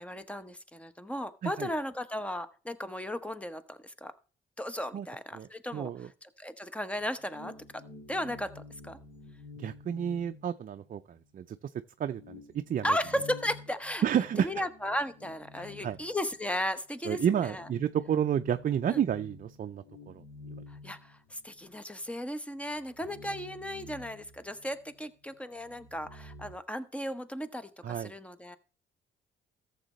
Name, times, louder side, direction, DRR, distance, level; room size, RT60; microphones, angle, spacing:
voice 1, 0.0-4.1 4.6-5.9 6.2-7.8 8.1-9.0 12.8-14.0 14.4-17.7 18.9-19.0 20.7-28.6, equal, 5° left, 0.9 m, -35 dB
voice 2, 5.3-6.1 9.6-11.6 12.0-12.9 14.0-14.5 15.6-16.0 17.0-20.2 27.8-28.1, right 9 dB, 45° right, 0.5 m, -31 dB
sound 1, 6.9-11.2 11.6-11.7 12.1-16.6 17.0-21.7 22.1-22.2 22.6-25.1 25.3-26.5, left 3 dB, 85° left, 3.1 m, -50 dB
14.0 x 7.3 x 3.1 m
cardioid pair, 90°, 20 cm